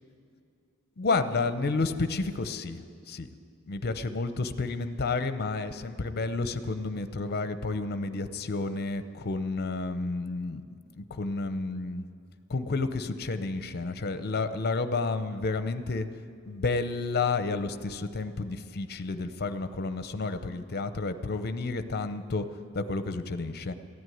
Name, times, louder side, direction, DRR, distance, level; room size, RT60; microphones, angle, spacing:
voice 1, 1.0-2.8 3.1-3.3 3.7-10.6 10.9-12.1 12.5-16.1 16.5-22.5 22.7-23.7, left 3 dB, 45° left, 11 dB, 0.7 m, -30 dB
14.0 x 9.6 x 9.3 m, 2.4 s
head